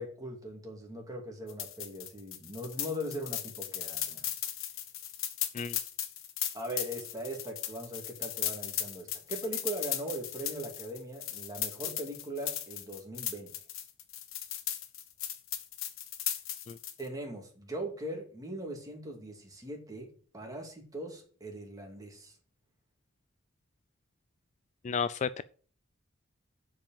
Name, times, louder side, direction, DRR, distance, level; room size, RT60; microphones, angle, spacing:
voice 1, 0.0-4.3 6.5-13.5 17.0-22.3, right 1 dB, 20° right, 1 dB, 2.5 m, -40 dB
sound 1, 1.5-17.0, left 11 dB, 75° left, 1.2 m, -37 dB
voice 2, 24.8-25.4, left 6 dB, 35° left, 15 dB, 0.3 m, -32 dB
7.6 x 5.2 x 7.1 m, 0.42 s
head